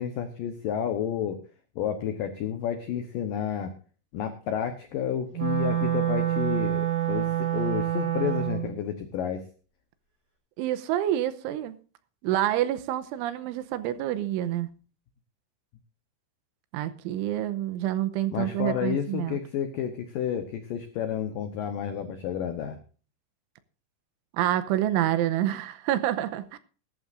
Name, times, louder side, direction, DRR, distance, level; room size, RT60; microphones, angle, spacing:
voice 1, 0.0-1.4 1.8-3.7 4.1-9.4 18.3-22.8, left 9 dB, 85° left, 1.9 m, -30 dB
Wind instrument woodwind instrument, 5.3-8.7, right 11 dB, 20° right, 5.6 m, -27 dB
voice 2, 10.6-11.8 12.2-14.7 16.7-19.4 24.3-26.6, right 12 dB, 85° right, 3.2 m, -27 dB
20.5 x 11.5 x 2.6 m
omnidirectional pair, 5.6 m